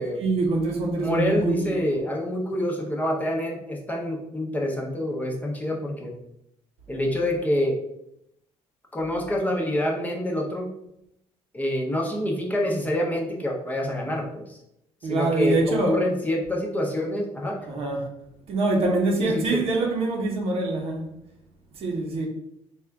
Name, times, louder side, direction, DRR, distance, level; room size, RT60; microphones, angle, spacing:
voice 1, 0.2-2.0 15.0-16.0 17.6-18.1 18.5-21.1 21.8-22.3, right 2 dB, 60° right, 0.9 m, -25 dB
voice 2, 0.9-6.1 6.9-7.8 8.9-10.7 11.5-14.6 15.1-17.6 19.2-19.6, left 1 dB, 15° left, 0.8 m, -27 dB
3.6 x 2.4 x 3.4 m
cardioid pair, 100°, 12 cm